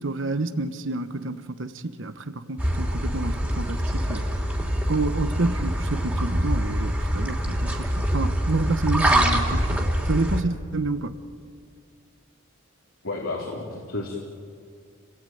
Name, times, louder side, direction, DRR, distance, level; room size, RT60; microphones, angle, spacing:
voice 1, 0.0-4.2 4.9-11.1, right 2 dB, 65° right, 1.1 m, -29 dB
sound 1, 2.6-10.4, equal, 10° right, 3.1 m, -25 dB
voice 2, 13.0-14.2, left 2 dB, 80° left, 3.6 m, -31 dB
30.0 x 18.5 x 9.2 m
head